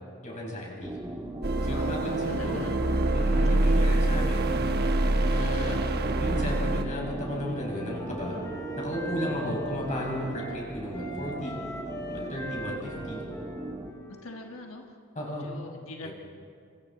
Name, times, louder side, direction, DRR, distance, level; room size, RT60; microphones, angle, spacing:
voice 1, 0.2-0.9 1.6-2.6 3.1-4.5 5.3-5.8 6.2-8.4 8.8-11.6 12.1-13.2 15.2-15.5 16.0-16.1, equal, 35° left, -2 dB, 5.2 m, -34 dB
sound 1, 0.8-13.9, right 1 dB, 15° right, 1.4 m, -38 dB
sound 2, 1.4-6.8, right 1 dB, 45° right, 1.1 m, -25 dB
voice 2, 1.7-2.8 14.1-14.9 15.2-16.1, left 2 dB, 65° left, 2 dB, 1.4 m, -43 dB
Wind instrument woodwind instrument, 7.0-10.6 10.9-14.7, equal, 15° left, 2.9 m, -41 dB
29.0 x 25.5 x 4.1 m, 2.4 s
head